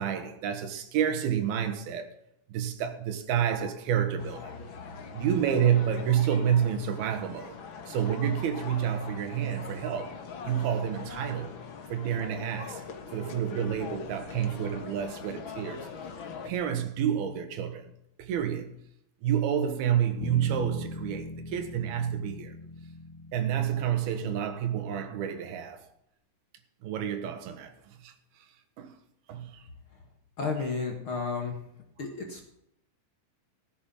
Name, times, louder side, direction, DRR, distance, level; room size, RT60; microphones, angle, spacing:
voice 1, 0.0-2.1 2.5-4.5 5.1-7.6 7.9-10.2 10.5-11.6 11.9-12.8 13.1-15.9 16.4-17.9 18.2-18.7 19.2-22.5 23.3-25.8 26.8-27.7 28.0-28.1 28.8-28.9 29.3-29.6, right 9 dB, 85° right, 3.3 m, -29 dB
sound 1, 4.2-16.5, left 6 dB, 65° left, 1.2 m, -43 dB
sound 2, 20.2-24.6, left 2 dB, 5° left, 2.7 m, -41 dB
voice 2, 30.4-31.6 32.0-32.5, left 4 dB, 45° left, 2.1 m, -32 dB
15.5 x 8.7 x 5.7 m
omnidirectional pair, 4.3 m